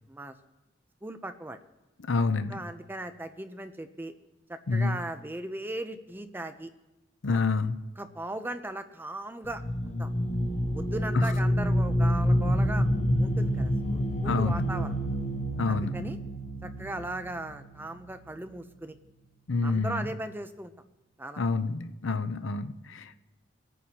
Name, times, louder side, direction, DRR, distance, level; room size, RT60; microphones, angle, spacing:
voice 1, 1.0-1.6 2.5-4.1 4.5-6.7 7.3-7.4 8.0-10.1 10.7-12.9 13.2-15.0 15.7-16.2 16.6-18.9 19.6-20.7 21.2-21.4 22.1-22.2, right 1 dB, 10° right, 9 dB, 0.6 m, -38 dB
voice 2, 2.0-2.5 4.7-5.0 7.2-7.8 14.2-14.7 15.6-15.9 19.5-20.0 21.4-23.2, left 3 dB, 75° left, 10 dB, 0.7 m, -28 dB
sound 1, 9.4-18.1, equal, 35° left, 0.9 m, -28 dB
26.0 x 9.2 x 2.9 m, 1.0 s
head